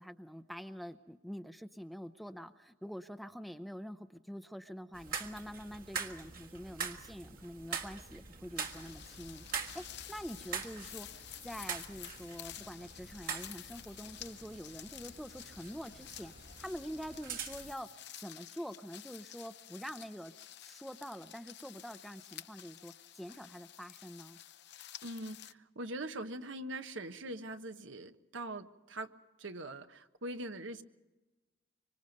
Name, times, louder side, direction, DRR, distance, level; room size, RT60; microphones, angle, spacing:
voice 1, 0.0-17.9 18.2-20.3 20.6-24.4, equal, ahead, 9 dB, 0.6 m, -46 dB
sound 1, 4.9-17.7, right 6 dB, 45° right, 1.6 m, -44 dB
sound 2, 8.6-25.5, left 12 dB, 60° left, 0.6 m, -51 dB
voice 2, 25.0-29.1 29.4-30.8, right 1 dB, 75° right, 8 dB, 1.2 m, -42 dB
25.0 x 25.0 x 5.3 m, 1.1 s
head